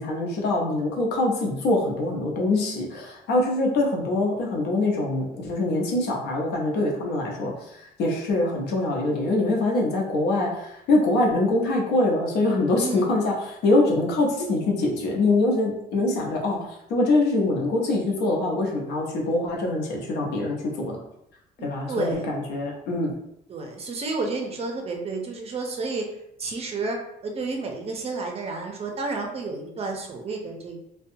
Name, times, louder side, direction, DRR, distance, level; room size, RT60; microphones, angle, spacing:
voice 1, 0.0-7.5 8.0-21.0 21.6-23.1, left 2 dB, 80° left, 0 dB, 0.7 m, -24 dB
voice 2, 12.8-13.1 21.6-22.3 23.5-26.0 26.4-27.0 27.2-30.8, right 3 dB, 35° right, 2 dB, 0.5 m, -31 dB
2.6 x 2.2 x 2.6 m, 0.80 s
cardioid pair, 110°, 17 cm